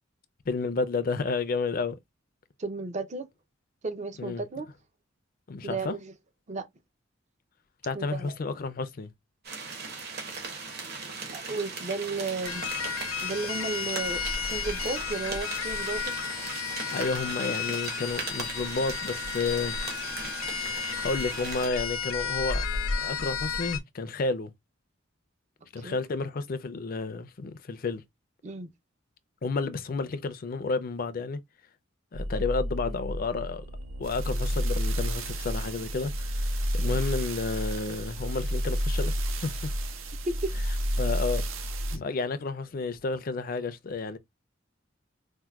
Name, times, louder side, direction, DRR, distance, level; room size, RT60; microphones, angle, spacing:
voice 1, 0.5-2.0 4.2-4.4 5.5-6.0 7.8-9.1 16.9-19.8 20.7-24.5 25.7-28.0 29.4-31.4 32.1-33.6 34.0-39.7 41.0-41.4 41.9-44.2, left 4 dB, 45° left, 0.4 m, -31 dB
voice 2, 2.6-3.3 3.8-4.7 5.6-6.1 6.5-6.7 7.9-8.3 11.3-12.6 13.2-14.2 14.5-16.1 17.4-17.5 25.8-26.0 28.4-28.7 36.8-37.0 40.2-40.6, right 3 dB, 35° right, 0.5 m, -33 dB
sound 1, 9.4-21.7, right 4 dB, 55° right, 1.2 m, -38 dB
sound 2, 12.4-23.8, left 6 dB, 90° left, 0.6 m, -33 dB
sound 3, 32.1-42.0, equal, 80° right, 0.6 m, -30 dB
4.4 x 2.2 x 2.3 m
head